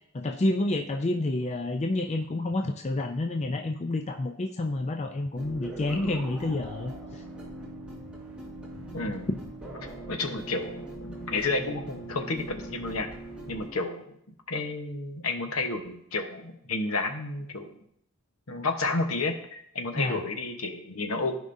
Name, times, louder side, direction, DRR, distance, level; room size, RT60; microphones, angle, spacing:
voice 1, 0.1-7.2 9.3-9.4 19.9-20.2, left 2 dB, 30° left, 4 dB, 0.4 m, -29 dB
sound 1, 5.4-13.7, right 1 dB, 5° right, 2.1 m, -41 dB
voice 2, 8.9-9.3 10.1-13.1 13.5-14.0 14.5-17.8 18.5-21.4, left 3 dB, 70° left, 5 dB, 1.1 m, -31 dB
15.0 x 5.2 x 2.7 m, 0.70 s
head